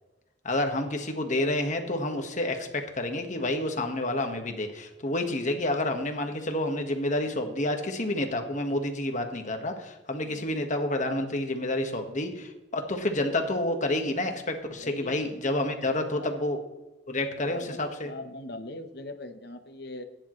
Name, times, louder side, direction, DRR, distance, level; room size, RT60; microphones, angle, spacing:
voice 1, 0.4-16.6 17.1-18.1, left 1 dB, 45° left, 5 dB, 1.5 m, -29 dB
voice 2, 14.8-15.2 16.0-16.3 17.4-20.0, left 2 dB, 60° left, 7 dB, 1.0 m, -41 dB
15.5 x 10.0 x 3.2 m, 1.0 s
head